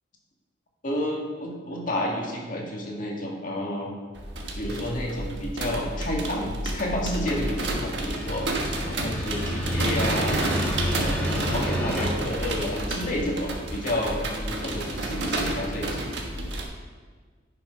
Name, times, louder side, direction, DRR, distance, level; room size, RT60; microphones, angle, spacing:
voice 1, 0.8-3.9 4.6-8.5 8.9-10.4 10.9-16.0, left 1 dB, 45° left, -1 dB, 1.9 m, -30 dB
sound 1, 4.1-16.6, right 1 dB, 70° right, 1.4 m, -30 dB
sound 2, 7.6-12.1, equal, 10° left, 1.3 m, -30 dB
10.5 x 6.2 x 5.2 m, 1.5 s
head